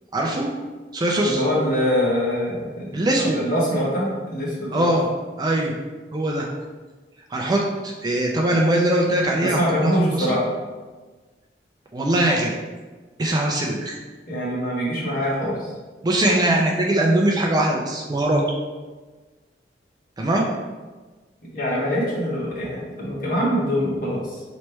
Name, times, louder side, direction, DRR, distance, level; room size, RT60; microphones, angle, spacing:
voice 1, 0.1-0.5 0.9-1.4 2.9-3.4 4.7-5.1 5.4-5.7 6.1-6.5 7.3-10.4 11.9-12.5 13.2-14.0 16.0-18.4 20.2-20.5, right 1 dB, 20° right, -1 dB, 0.4 m, -21 dB
voice 2, 1.2-4.9 9.4-10.5 14.3-15.7 21.5-24.4, equal, 50° left, -5 dB, 1.2 m, -24 dB
3.2 x 3.0 x 4.4 m, 1.3 s
head